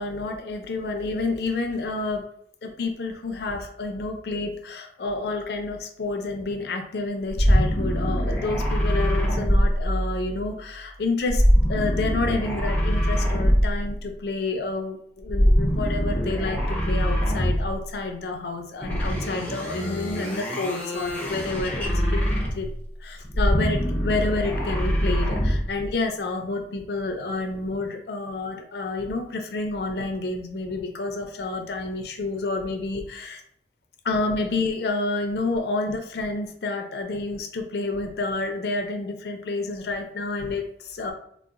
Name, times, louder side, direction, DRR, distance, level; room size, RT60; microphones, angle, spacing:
voice 1, 0.0-2.2 2.6-11.4 11.7-21.9 22.1-22.2 22.5-22.7 23.0-33.4 34.0-41.1, left 3 dB, 60° left, 4 dB, 0.4 m, -29 dB
sound 1, 7.3-10.3 11.3-14.0 15.2-17.9 18.8-22.8 23.2-25.7, equal, 10° left, 0.5 m, -23 dB
3.8 x 2.0 x 2.4 m, 0.66 s
head